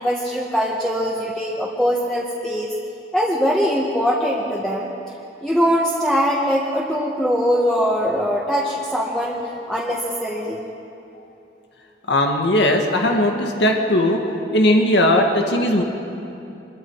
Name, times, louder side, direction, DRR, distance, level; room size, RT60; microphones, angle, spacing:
voice 1, 0.0-2.7 3.1-4.9 5.4-9.4 9.7-10.6, equal, 5° left, -5 dB, 1.7 m, -21 dB
voice 2, 12.1-14.2 14.5-15.8, left 1 dB, 85° left, 2 dB, 1.9 m, -18 dB
25.5 x 22.0 x 4.9 m, 2.8 s
head